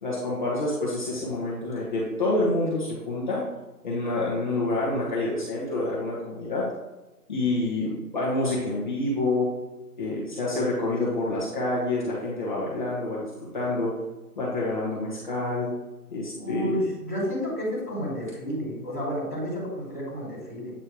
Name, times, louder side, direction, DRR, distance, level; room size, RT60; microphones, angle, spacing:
voice 1, 0.0-3.4 3.8-6.7 7.3-9.5 10.0-13.3 13.5-13.9 14.4-15.7 16.1-16.7, left 2 dB, 30° left, -8 dB, 1.3 m, -27 dB
voice 2, 16.4-20.7, equal, 5° right, -15 dB, 1.8 m, -31 dB
8.6 x 3.3 x 4.5 m, 1.1 s
hypercardioid pair, 175°, 47 cm